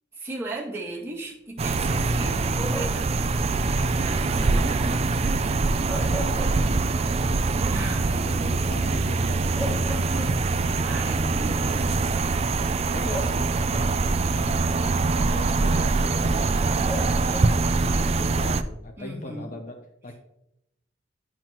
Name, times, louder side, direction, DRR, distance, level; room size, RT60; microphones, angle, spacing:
voice 1, 0.1-3.1 4.0-5.2 7.7-8.4 10.8-11.9 19.0-19.5, right 2 dB, 15° right, -7 dB, 2.1 m, -36 dB
sound 1, 1.6-18.6, right 3 dB, 35° right, 0.3 m, -24 dB
sound 2, 2.7-3.2 5.7-7.1 7.5-7.6 9.1-9.2 9.6-10.7 11.7-11.8 13.1-13.8 16.9-17.7, equal, ahead, 1.0 m, -36 dB
voice 2, 6.1-7.0 8.1-10.4 11.0-11.9 12.9-17.5 17.8-20.2, left 1 dB, 45° left, 5 dB, 0.7 m, -40 dB
9.3 x 5.9 x 3.0 m, 0.82 s
head